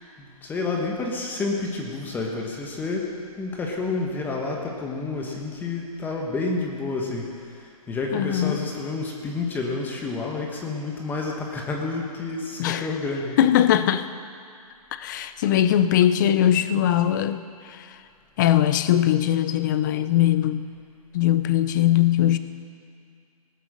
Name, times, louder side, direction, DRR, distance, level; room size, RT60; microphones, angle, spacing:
voice 1, 0.2-3.1 3.4-7.3 7.5-13.4, left 3 dB, 10° left, 0 dB, 1.1 m, -29 dB
voice 2, 8.1-8.7 12.6-12.9 13.4-14.1 14.9-18.0 18.4-20.6 21.1-22.4, left 11 dB, 30° left, 12 dB, 0.5 m, -21 dB
18.5 x 7.8 x 6.5 m, 2.3 s
hypercardioid pair, 150°, 20 cm